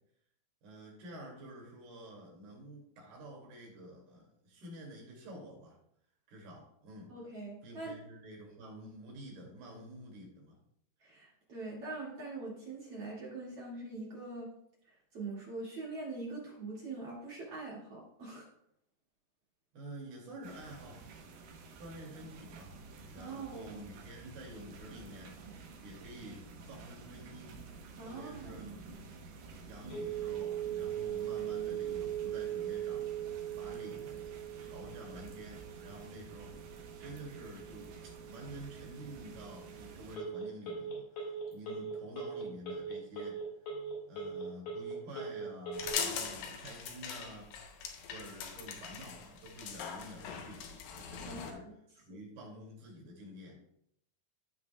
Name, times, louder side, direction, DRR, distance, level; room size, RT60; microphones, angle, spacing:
voice 1, 0.6-5.8 6.3-7.1 7.6-10.6 19.7-21.0 21.8-22.8 23.1-27.6 28.0-29.0 29.7-33.2 33.6-34.3 34.6-43.4 44.1-47.5 48.1-50.6 50.9-51.6 52.0-53.6, right 1 dB, 85° right, -2 dB, 4.4 m, -49 dB
voice 2, 7.1-7.9 11.0-14.5 14.9-18.5 23.2-23.8 28.0-28.7 51.3-51.6, right 3 dB, 45° right, -5 dB, 2.8 m, -43 dB
sound 1, 20.4-40.2, right 4 dB, 70° right, 2.5 m, -51 dB
Telephone, 29.9-45.9, right 7 dB, 60° left, 3.4 m, -40 dB
sound 2, 45.7-51.5, left 7 dB, 75° left, 2.6 m, -41 dB
15.0 x 5.8 x 2.3 m, 0.73 s
omnidirectional pair, 4.4 m